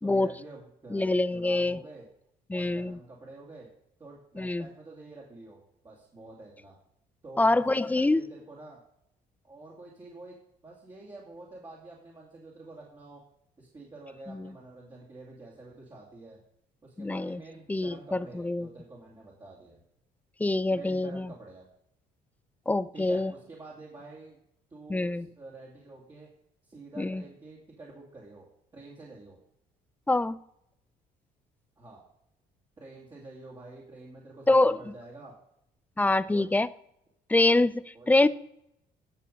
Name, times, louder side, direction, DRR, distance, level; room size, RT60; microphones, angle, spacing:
voice 1, 0.0-2.1 2.5-3.7 4.0-5.6 5.8-6.7 7.2-8.8 9.4-10.4 10.6-13.2 13.6-16.4 16.8-19.8 20.7-21.7 22.9-24.4 24.7-26.3 26.6-28.4 28.7-29.4 31.8-32.0 32.8-35.4 36.2-36.5 37.9-38.3, right 2 dB, 25° right, -4 dB, 2.4 m, -48 dB
voice 2, 0.9-1.8 2.5-3.0 4.4-4.7 7.4-8.2 14.3-14.5 17.0-17.4 17.7-18.7 20.4-21.3 22.7-23.3 24.9-25.3 27.0-27.2 30.1-30.4 34.5-34.8 36.0-36.7 37.3-38.3, left 2 dB, 10° left, 17 dB, 0.4 m, -25 dB
10.0 x 6.9 x 5.2 m, 0.76 s
cardioid pair, 110°, 17 cm